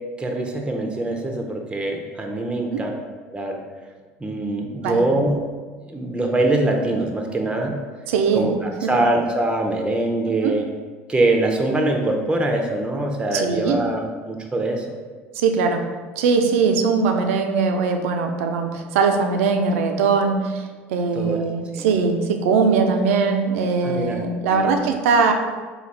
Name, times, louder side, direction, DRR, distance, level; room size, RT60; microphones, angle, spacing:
voice 1, 0.2-3.0 3.3-3.6 4.2-5.4 5.9-7.8 8.3-10.7 11.1-14.9 21.1-21.4 21.8-21.9 23.8-24.7, right 2 dB, 15° right, 2 dB, 0.6 m, -23 dB
voice 2, 8.1-8.5 8.8-8.9 10.4-10.5 13.3-13.8 15.3-15.9 16.2-20.6 20.9-25.3, right 5 dB, 80° right, 5 dB, 0.4 m, -20 dB
4.0 x 2.3 x 3.3 m, 1.4 s
hypercardioid pair, 75°, 7 cm